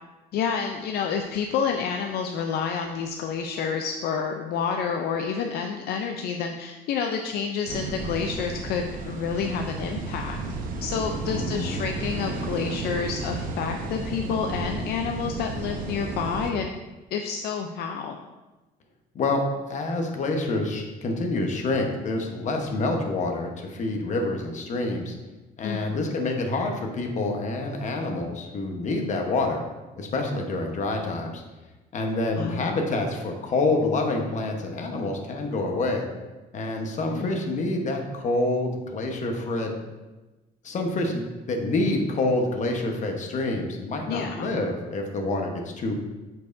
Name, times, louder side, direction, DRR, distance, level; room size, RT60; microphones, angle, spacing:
voice 1, 0.3-10.4 10.8-16.7 17.1-18.2 25.6-26.2 32.4-32.7 37.2-37.3 44.1-44.5, left 6 dB, 70° left, 3 dB, 0.5 m, -29 dB
sound 1, 7.7-16.5, right 3 dB, 55° right, 0.8 m, -33 dB
voice 2, 11.3-11.8 19.1-19.4 19.7-25.1 25.6-29.6 30.0-31.4 31.9-36.1 36.5-39.8 40.6-45.9, left 2 dB, 45° left, 3 dB, 1.1 m, -27 dB
8.2 x 4.6 x 2.6 m, 1.1 s
cardioid pair, 110°, 17 cm